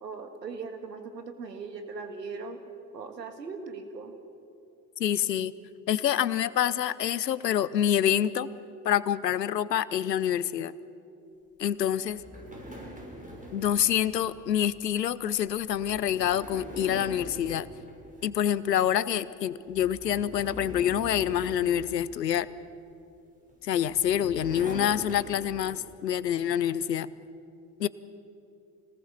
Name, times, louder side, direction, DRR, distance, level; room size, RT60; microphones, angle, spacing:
voice 1, 0.0-2.6 2.9-4.1, right 4 dB, 90° right, 7 dB, 1.9 m, -39 dB
voice 2, 5.0-5.5 5.9-8.5 8.8-10.7 11.6-12.2 13.5-17.7 18.2-22.5 23.6-27.1 27.8-27.9, left 10 dB, 90° left, 18 dB, 0.7 m, -27 dB
sound 1, 12.1-18.6 19.0-19.3 19.7-22.7 23.5-25.9, equal, 15° right, 6.4 m, -44 dB
25.5 x 18.5 x 7.2 m, 2.7 s
figure-of-eight pair, 60°, 48 cm